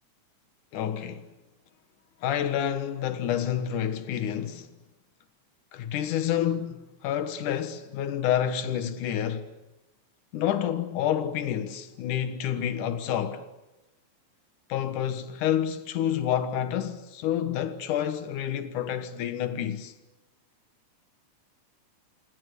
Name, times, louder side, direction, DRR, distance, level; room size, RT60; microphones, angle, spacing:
voice 1, 0.7-1.3 2.2-4.7 5.7-9.5 10.3-13.5 14.7-19.9, left 10 dB, 85° left, 3.0 m, -29 dB
28.5 x 25.0 x 8.2 m
omnidirectional pair, 3.5 m